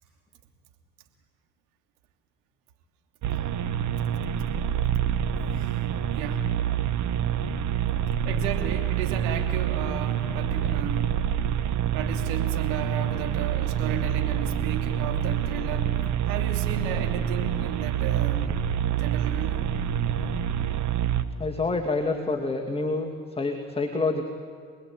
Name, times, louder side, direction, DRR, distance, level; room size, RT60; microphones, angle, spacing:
sound 1, 3.2-21.2, right 9 dB, 50° right, 1.6 m, -27 dB
voice 1, 6.1-6.5 8.2-11.1 11.9-15.9 16.2-18.4 18.9-19.6, right 9 dB, 75° right, 5 dB, 3.0 m, -34 dB
voice 2, 21.4-24.2, left 3 dB, 15° left, 2 dB, 2.5 m, -27 dB
26.5 x 20.5 x 9.2 m, 2.1 s
hypercardioid pair, 70°, 36 cm